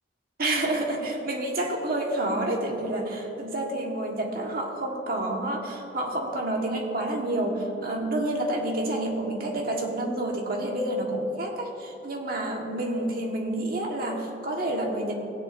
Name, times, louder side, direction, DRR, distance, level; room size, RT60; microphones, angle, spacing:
voice 1, 0.4-15.1, right 1 dB, 55° right, 0 dB, 1.5 m, -29 dB
16.5 x 9.9 x 2.6 m, 3.0 s
head